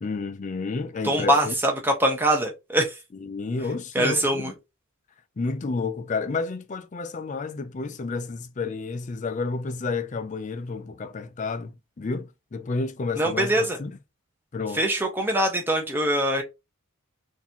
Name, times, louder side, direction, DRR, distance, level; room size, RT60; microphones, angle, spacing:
voice 1, 0.0-1.5 3.1-4.5 5.4-14.0 14.5-14.8, left 4 dB, 35° left, 0.4 m, -30 dB
voice 2, 1.0-3.0 3.9-4.5 13.2-13.8 14.7-16.4, right 1 dB, 10° right, 0.9 m, -23 dB
3.9 x 2.7 x 2.9 m
head